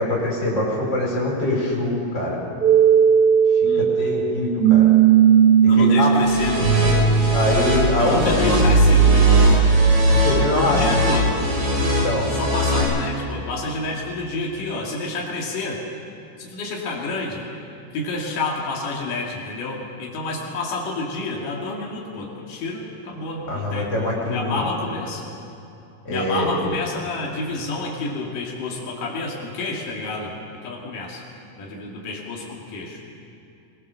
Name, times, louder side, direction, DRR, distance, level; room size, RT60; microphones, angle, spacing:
voice 1, 0.0-2.4 3.8-4.9 5.8-6.1 6.5-8.7 9.0-9.3 10.1-11.2 12.0-12.3 23.5-24.6 26.1-26.6, left 1 dB, 35° left, -2 dB, 5.7 m, -24 dB
sound 1, 2.6-10.5, right 7 dB, 55° right, 1.1 m, -17 dB
voice 2, 5.7-6.7 8.0-9.6 10.5-11.3 12.3-15.9 16.4-17.5 17.9-23.9 24.3-25.2 26.1-30.3 30.6-31.2 31.6-33.0, left 3 dB, 90° left, -2 dB, 3.9 m, -29 dB
sound 2, 6.2-12.8, left 1 dB, 75° right, 6.6 m, -22 dB
23.0 x 21.0 x 6.9 m, 2.7 s
omnidirectional pair, 3.6 m